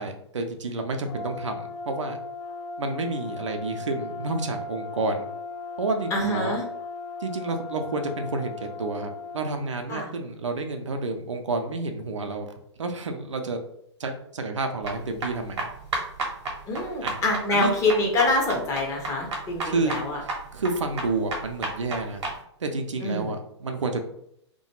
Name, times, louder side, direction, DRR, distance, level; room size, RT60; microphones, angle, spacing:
voice 1, 0.0-2.2 2.8-5.3 5.8-6.5 7.2-12.5 12.8-13.6 14.0-15.7 17.0-17.2 17.5-17.7 19.6-20.0 20.5-22.2 22.6-24.0, right 3 dB, 85° right, 5 dB, 0.5 m, -30 dB
Brass instrument, 1.1-9.5, left 3 dB, 65° left, 0.5 m, -37 dB
voice 2, 6.1-6.6 9.9-10.1 16.7-20.2 23.0-23.3, left 2 dB, 20° left, 0 dB, 0.6 m, -25 dB
sound 1, 14.8-22.4, right 3 dB, 65° right, 0.8 m, -32 dB
2.3 x 2.2 x 2.9 m, 0.72 s
hypercardioid pair, 120°, 15 cm